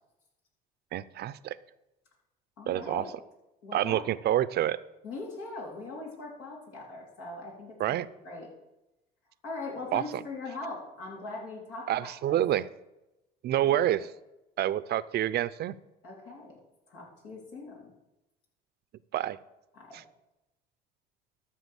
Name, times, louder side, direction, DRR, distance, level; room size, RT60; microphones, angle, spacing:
voice 1, 0.9-1.6 2.7-3.0 3.7-4.8 7.8-8.1 9.9-10.2 11.9-12.7 13.4-14.1 14.6-15.7 19.1-19.4, right 12 dB, 55° right, 16 dB, 0.6 m, -27 dB
voice 2, 2.6-3.1 3.6-4.0 5.0-8.0 8.2-8.5 9.4-12.4 13.6-13.8 16.0-16.6 16.9-17.9 19.7-20.0, left 3 dB, 80° left, -2 dB, 3.6 m, -41 dB
13.0 x 5.7 x 7.1 m, 0.96 s
hypercardioid pair, 70°, 21 cm